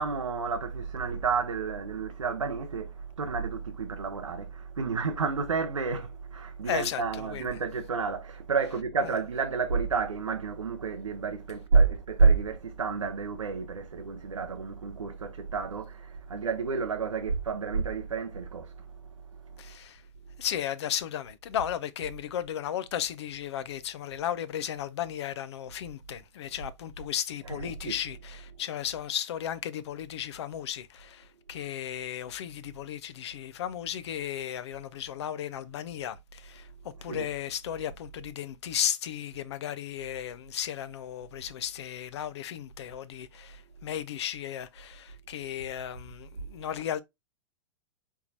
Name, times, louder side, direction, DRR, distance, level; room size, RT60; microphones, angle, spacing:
voice 1, 0.0-18.8 27.5-27.9 37.1-37.2, right 4 dB, 85° right, 0.6 m, -29 dB
voice 2, 6.6-7.5 9.0-9.1 19.6-20.0 20.4-47.0, left 10 dB, 60° left, 0.6 m, -35 dB
4.6 x 3.6 x 2.6 m
figure-of-eight pair, 105°, 16 cm